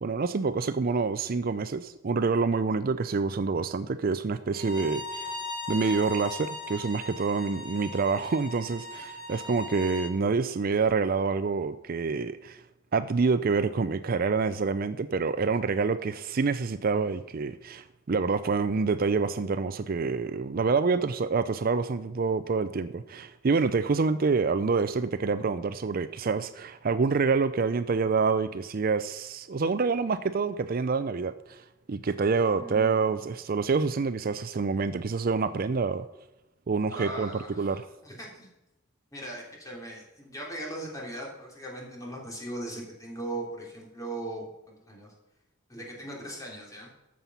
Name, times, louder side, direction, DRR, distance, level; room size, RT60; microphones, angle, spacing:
voice 1, 0.0-5.3 5.7-12.6 12.9-31.6 31.9-36.1 36.7-37.3 37.6-37.8, right 4 dB, 50° right, 13 dB, 0.5 m, -27 dB
Bowed string instrument, 4.5-10.1, left 2 dB, 50° left, 4.1 m, -38 dB
voice 2, 32.6-33.3 36.9-38.5 39.1-45.1 45.7-46.9, right 1 dB, 20° left, -2 dB, 3.4 m, -39 dB
12.5 x 7.5 x 5.6 m, 0.95 s
head